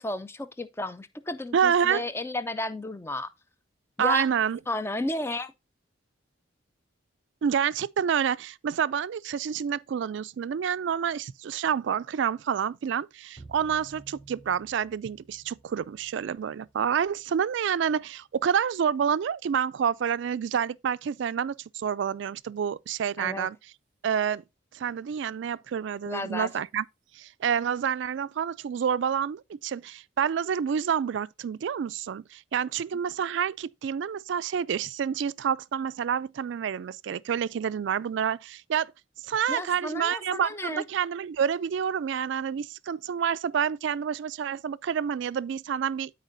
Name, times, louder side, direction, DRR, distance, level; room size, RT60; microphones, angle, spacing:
voice 1, 0.0-3.3 4.0-4.3 4.7-5.5 23.2-23.5 26.1-26.5 39.5-40.8, left 2 dB, 10° left, 0.4 m, -33 dB
voice 2, 1.5-2.1 4.0-4.6 7.4-23.6 24.0-24.4 24.7-26.8 27.2-38.9 39.2-46.1, right 7 dB, 65° right, 0.3 m, -28 dB
sound 1, 13.4-17.8, right 3 dB, 30° left, 3.0 m, -53 dB
13.0 x 4.3 x 2.6 m
head